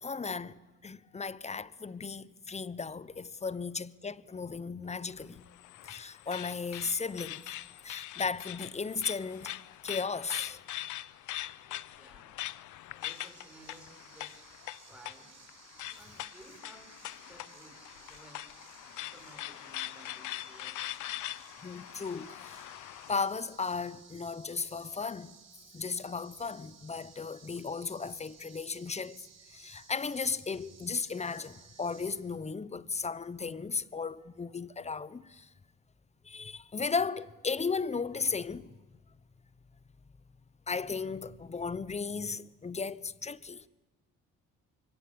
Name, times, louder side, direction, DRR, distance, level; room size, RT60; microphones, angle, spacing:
voice 1, 0.0-5.4 5.8-7.4 7.8-10.6 21.6-22.6 23.1-25.4 25.7-35.5 36.2-38.8 40.7-43.7, left 4 dB, 20° left, 0.8 m, -36 dB
sound 1, 5.1-23.3, left 15 dB, 80° left, 0.8 m, -42 dB
voice 2, 11.6-12.4 13.0-14.5 14.9-15.4 15.9-18.5 19.0-20.8, right 2 dB, 5° right, 6.6 m, -57 dB
sound 2, 13.0-32.2, right 6 dB, 60° right, 7.6 m, -57 dB
25.0 x 22.5 x 8.7 m
cardioid pair, 90°, 30 cm